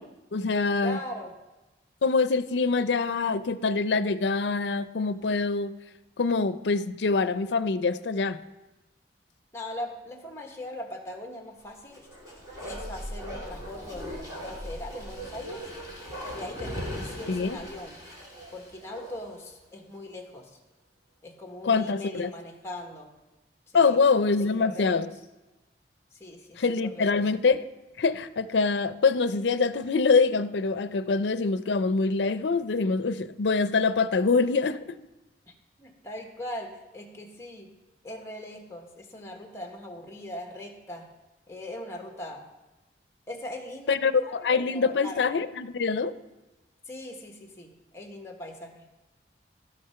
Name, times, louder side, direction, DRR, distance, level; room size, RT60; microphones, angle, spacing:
voice 1, 0.3-1.0 2.0-5.7 6.2-8.4 17.3-17.6 21.6-22.3 23.7-25.1 26.6-27.6 28.0-35.0 43.9-46.1, left 4 dB, 80° left, 0.5 m, -25 dB
voice 2, 0.8-1.3 9.5-12.1 12.6-15.6 16.3-18.0 18.5-20.6 21.2-23.1 23.7-24.0 24.6-24.9 26.1-27.1 35.8-37.7 38.0-41.1 41.5-42.5 43.3-44.0 44.2-45.2 46.8-48.8, left 1 dB, 15° left, 1.4 m, -40 dB
Bark, 11.9-19.4 19.8-19.9, equal, 20° right, 2.6 m, -39 dB
13.0 x 6.6 x 5.8 m
head